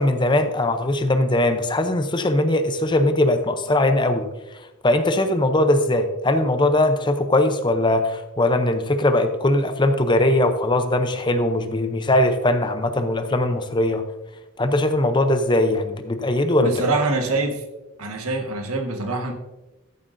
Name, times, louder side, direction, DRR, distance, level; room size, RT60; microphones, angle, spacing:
voice 1, 0.0-4.3 4.8-14.0 14.6-16.7, left 1 dB, 20° left, 8 dB, 0.6 m, -20 dB
voice 2, 16.6-17.6 18.0-19.3, right 2 dB, 90° right, 4 dB, 1.5 m, -24 dB
13.5 x 7.6 x 2.6 m, 1.0 s
head